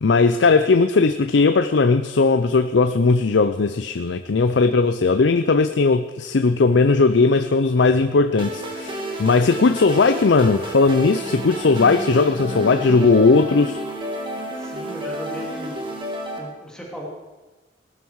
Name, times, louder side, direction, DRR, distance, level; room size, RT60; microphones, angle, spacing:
voice 1, 0.0-13.8, left 4 dB, 80° left, 0.6 m, -18 dB
sound 1, 8.4-16.4, right 1 dB, 30° right, 2.4 m, -31 dB
voice 2, 12.8-13.1 14.5-15.8 16.4-17.1, equal, 5° left, 2.7 m, -36 dB
18.0 x 12.5 x 4.8 m
head